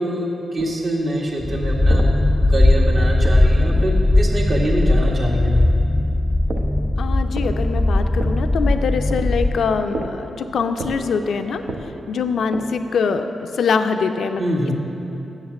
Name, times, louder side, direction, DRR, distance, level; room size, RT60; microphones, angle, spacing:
voice 1, 0.0-2.0 2.5-5.7 14.4-14.7, right 1 dB, 55° right, -3 dB, 1.6 m, -24 dB
sound 1, 0.6-4.0 6.4-13.1, right 2 dB, 80° right, 0.7 m, -34 dB
sound 2, 1.4-9.8, left 1 dB, 10° left, 0.3 m, -18 dB
voice 2, 7.0-11.6 12.1-13.3 13.6-14.4, left 5 dB, 75° left, 7 dB, 0.4 m, -23 dB
7.6 x 6.5 x 7.0 m, 3.0 s
cardioid pair, 75°, 0 cm